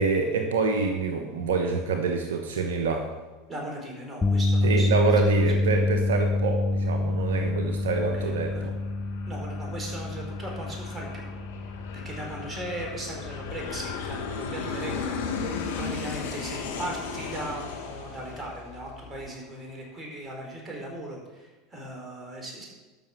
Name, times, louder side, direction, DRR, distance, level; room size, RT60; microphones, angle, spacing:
voice 1, 0.0-3.1 4.6-8.7, right 4 dB, 80° right, 4 dB, 1.1 m, -26 dB
voice 2, 3.5-5.1 8.1-8.7 9.3-11.3 11.6-22.6, right 1 dB, 25° right, 0 dB, 4.2 m, -38 dB
sound 1, 4.2-16.5 16.8-17.1 19.3-19.4, left 2 dB, 20° left, 0.6 m, -28 dB
Aircraft, 6.5-19.5, left 5 dB, 75° left, 1.6 m, -37 dB
12.5 x 6.3 x 5.9 m, 1.2 s
hypercardioid pair, 85°, 0 cm